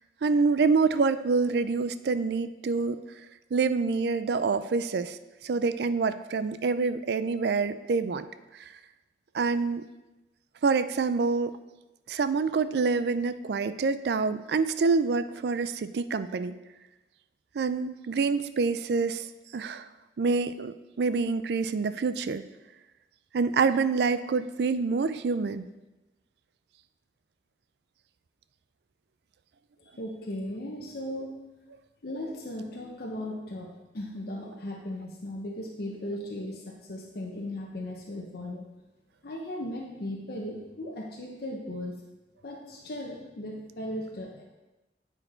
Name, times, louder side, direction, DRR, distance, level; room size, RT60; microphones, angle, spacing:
voice 1, 0.2-3.0 3.5-5.2 5.4-8.3 8.6-8.7 9.3-9.8 10.6-11.5 12.1-16.5 17.5-19.3 19.5-19.9 20.2-22.4 23.3-25.7, right 4 dB, 65° right, 13 dB, 0.4 m, -26 dB
voice 2, 29.8-31.4 32.0-38.7 39.2-42.0 42.4-44.4, left 1 dB, 60° left, -1 dB, 0.9 m, -37 dB
8.9 x 4.4 x 4.4 m, 1.1 s
head